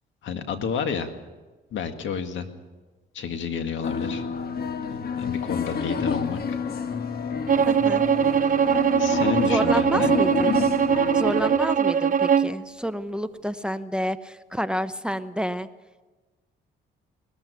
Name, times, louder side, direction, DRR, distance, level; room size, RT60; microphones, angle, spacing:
voice 1, 0.2-1.1 1.7-2.5 3.1-4.2 4.9-6.6 8.9-10.2, left 6 dB, 75° left, 7 dB, 2.1 m, -30 dB
sound 1, 3.8-11.6, left 5 dB, 50° left, 1.4 m, -29 dB
Bowed string instrument, 7.5-12.6, right 7 dB, 45° right, 0.8 m, -21 dB
voice 2, 7.7-8.0 9.4-10.5 11.1-15.7, equal, 5° right, 13 dB, 0.8 m, -29 dB
20.5 x 14.5 x 9.3 m, 1.2 s
cardioid pair, 90°, 20 cm